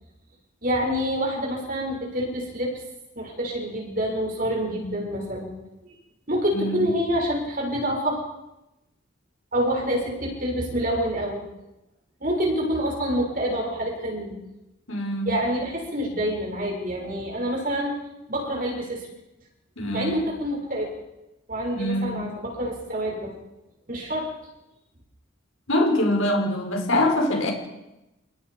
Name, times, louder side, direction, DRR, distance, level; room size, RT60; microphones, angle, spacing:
voice 1, 0.6-2.7 3.1-5.5 6.3-8.2 9.5-11.4 12.2-14.3 15.2-17.9 18.3-19.1 19.9-20.9 21.5-23.3 23.9-24.3, equal, 40° right, 0 dB, 6.8 m, -27 dB
voice 2, 6.5-6.9 14.9-15.4 19.8-20.1 21.8-22.3 25.7-27.5, left 1 dB, 80° left, 2 dB, 5.0 m, -24 dB
29.5 x 19.5 x 5.3 m, 0.94 s
head